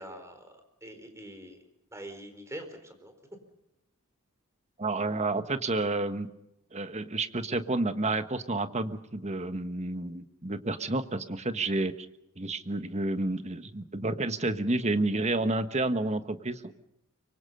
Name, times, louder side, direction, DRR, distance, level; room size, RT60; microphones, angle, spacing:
voice 1, 0.0-1.6 1.9-3.2, right 1 dB, 15° right, 6 dB, 4.3 m, -44 dB
voice 2, 4.8-6.3 6.7-11.9 12.4-16.7, right 2 dB, 30° right, 10 dB, 1.3 m, -30 dB
25.0 x 24.5 x 5.5 m, 0.85 s
head